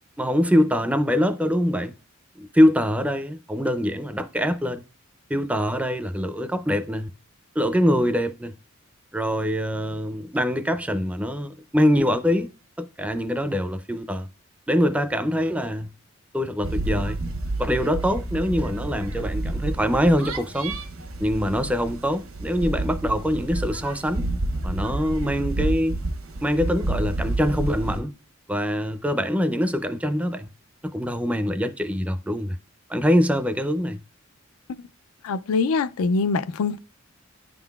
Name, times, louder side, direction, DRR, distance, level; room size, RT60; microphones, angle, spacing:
voice 1, 0.2-1.9 2.4-4.8 5.3-7.1 7.6-8.5 9.1-12.5 12.8-14.3 14.7-15.9 16.3-17.2 17.6-20.8 21.2-24.3 24.6-26.0 26.4-28.1 28.5-30.5 30.8-32.6 32.9-34.0, equal, 5° right, 0.4 m, -24 dB
sound 1, 16.6-28.0, right 2 dB, 70° right, 1.0 m, -29 dB
voice 2, 35.2-36.8, left 4 dB, 80° left, 0.4 m, -23 dB
11.0 x 3.8 x 2.3 m
head